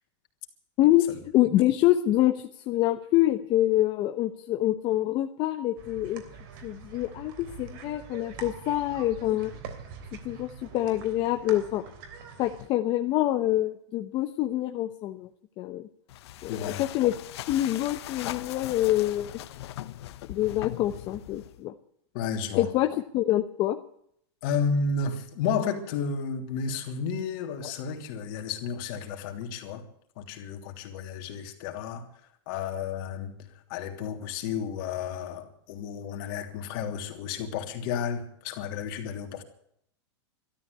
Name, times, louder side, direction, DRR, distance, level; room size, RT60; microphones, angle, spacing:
voice 1, 1.3-6.2 6.6-9.5 10.2-11.8 12.4-15.3 15.6-15.9 16.4-17.1 17.5-19.3 20.3-21.7 22.5-23.8, left 14 dB, 35° left, 6 dB, 0.9 m, -26 dB
sound 1, 5.8-12.7, right 6 dB, 50° right, 3.2 m, -44 dB
sound 2, 16.1-21.6, left 13 dB, 65° left, 1.0 m, -40 dB
voice 2, 16.5-16.9 22.1-22.7 24.4-29.9 30.2-32.1 32.5-33.3 33.7-39.4, left 6 dB, 50° left, 4 dB, 3.2 m, -32 dB
13.0 x 12.5 x 8.1 m, 0.67 s
supercardioid pair, 150°, 14 cm